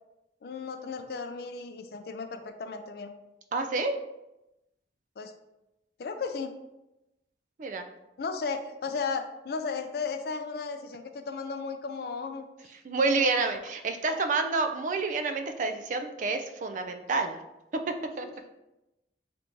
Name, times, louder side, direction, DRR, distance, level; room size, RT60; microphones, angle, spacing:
voice 1, 0.4-3.1 5.2-5.3 6.0-6.5 8.2-12.5 13.1-13.4 14.0-14.2 18.2-18.3, left 4 dB, 55° left, 7 dB, 0.4 m, -35 dB
voice 2, 3.5-4.0 7.6-7.9 12.8-17.4 17.9-18.3, right 3 dB, 45° right, 7 dB, 0.3 m, -29 dB
3.4 x 2.6 x 4.4 m, 0.94 s
head